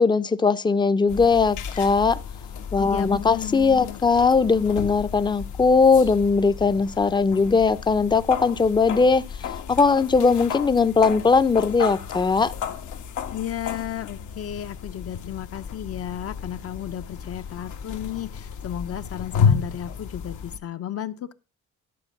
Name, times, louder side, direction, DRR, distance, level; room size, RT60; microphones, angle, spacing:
voice 1, 0.0-2.2 2.7-9.2 9.7-12.5, left 4 dB, 15° left, 0.6 m, -19 dB
sound 1, 1.1-20.6, left 7 dB, 75° left, 1.4 m, -32 dB
voice 2, 2.8-4.0 13.3-21.3, left 10 dB, 50° left, 0.8 m, -33 dB
11.5 x 4.4 x 7.1 m
cardioid pair, 90°, 30 cm